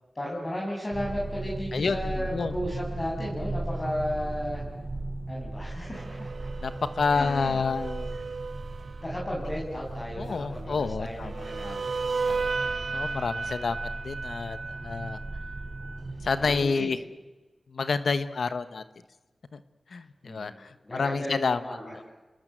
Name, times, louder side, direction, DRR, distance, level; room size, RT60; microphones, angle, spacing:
voice 1, 0.1-4.6 5.3-6.3 7.1-7.6 9.0-11.9 16.4-16.9 20.2-22.0, equal, 40° left, -3 dB, 6.8 m, -34 dB
sound 1, 0.9-16.6, right 2 dB, 50° right, 3.2 m, -37 dB
voice 2, 1.7-2.6 6.6-8.2 10.2-11.3 11.6-11.9 12.3-12.4 12.9-15.2 16.2-17.0 17.7-18.8 19.5-19.6 19.9-21.6, left 4 dB, 85° left, 12 dB, 1.1 m, -29 dB
sound 2, 5.9-9.1 11.2-16.0, right 4 dB, 75° right, 0.9 m, -34 dB
29.0 x 20.0 x 8.0 m, 1.2 s
cardioid pair, 55°, 0 cm